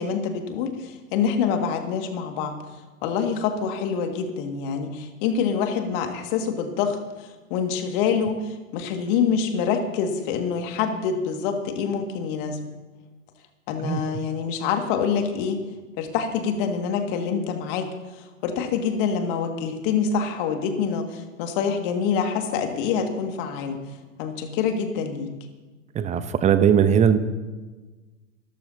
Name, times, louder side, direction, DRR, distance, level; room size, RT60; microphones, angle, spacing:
voice 1, 0.0-2.6 3.0-12.6 13.7-15.6 16.0-23.8 24.2-25.3, left 6 dB, 40° left, 5 dB, 2.2 m, -26 dB
voice 2, 25.9-27.2, right 8 dB, 15° right, 11 dB, 0.9 m, -19 dB
26.0 x 13.5 x 2.9 m, 1.2 s
figure-of-eight pair, 100°, 39 cm